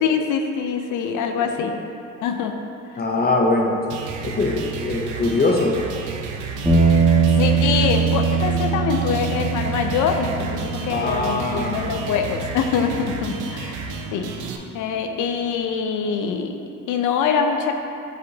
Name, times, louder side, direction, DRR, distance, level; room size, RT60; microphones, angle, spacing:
voice 1, 0.0-1.8 2.2-2.6 2.9-3.0 7.4-13.8 14.1-16.6 16.9-17.7, left 6 dB, 80° left, 5 dB, 0.6 m, -24 dB
voice 2, 1.4-1.7 3.0-3.9 4.2-5.8 10.9-11.9, left 2 dB, 30° left, 1 dB, 0.6 m, -22 dB
sound 1, 3.9-14.6, right 5 dB, 85° right, 0.6 m, -32 dB
sound 2, 6.6-15.0, right 5 dB, 15° right, 1.5 m, -23 dB
7.9 x 4.3 x 2.7 m, 2.6 s
cardioid pair, 90°, 30 cm